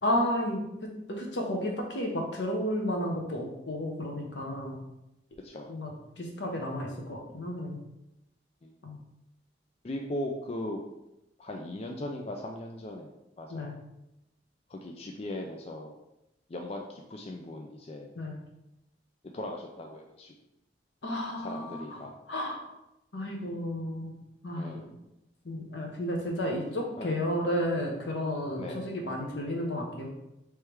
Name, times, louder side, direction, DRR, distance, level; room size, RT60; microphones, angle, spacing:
voice 1, 0.0-4.8 5.7-5.9 6.2-7.8 8.8-9.0 13.5-13.8 18.2-18.4 21.0-21.8 22.3-22.6 23.1-24.2 24.4-25.0 25.4-30.1, left 1 dB, 85° left, 0 dB, 1.1 m, -32 dB
voice 2, 5.4-5.7 8.6-8.8 9.8-10.8 11.4-13.1 13.4-13.7 14.7-16.0 16.5-18.1 19.3-20.3 21.4-22.1 24.6-24.8 27.0-27.2 28.6-28.8, left 1 dB, 35° left, 2 dB, 0.4 m, -38 dB
3.5 x 3.3 x 4.5 m, 0.89 s
head